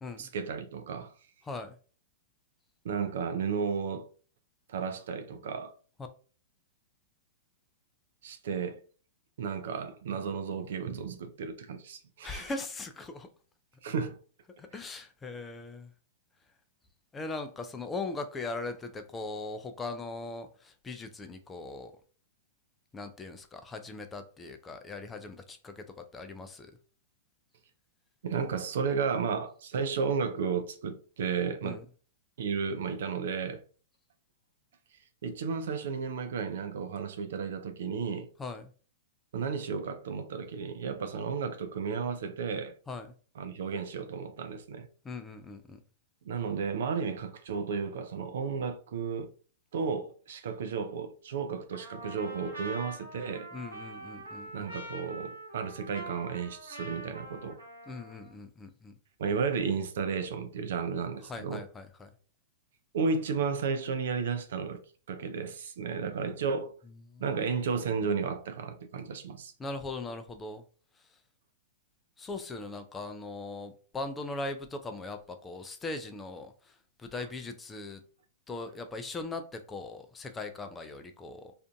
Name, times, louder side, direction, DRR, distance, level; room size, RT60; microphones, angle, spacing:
voice 1, 0.2-1.1 2.8-4.1 4.7-5.7 8.2-8.8 9.4-12.5 13.8-14.2 14.7-14.8 28.2-31.8 32.4-33.6 35.2-38.3 39.3-42.7 43.4-44.9 46.2-49.3 49.7-53.5 54.5-57.6 59.2-61.6 62.9-64.8 65.1-66.7 67.2-69.5 77.2-77.3, right 5 dB, 65° right, 0.4 m, -33 dB
voice 2, 12.2-13.3 14.6-15.9 17.1-21.9 22.9-26.7 31.6-31.8 38.4-38.7 42.9-43.1 45.0-45.8 53.5-54.7 57.9-58.9 61.3-62.1 67.1-67.2 69.6-70.6 72.2-76.5 77.0-78.0 78.5-81.5, left 3 dB, 15° left, 0.4 m, -40 dB
Trumpet, 51.7-58.3, right 2 dB, 85° right, 0.9 m, -44 dB
2.5 x 2.4 x 2.3 m
hypercardioid pair, 105°, 0 cm